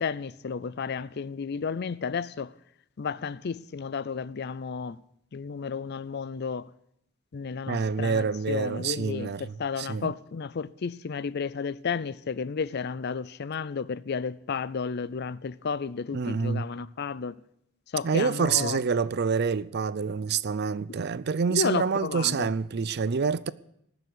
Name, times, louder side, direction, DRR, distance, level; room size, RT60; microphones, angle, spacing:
voice 1, 0.0-2.5 3.0-5.0 5.3-6.7 7.3-17.3 17.9-18.8 21.5-22.5, left 5 dB, 55° left, 0.5 m, -32 dB
voice 2, 7.7-10.1 16.1-16.7 18.0-23.5, right 5 dB, 55° right, 0.5 m, -27 dB
19.0 x 7.0 x 8.1 m
head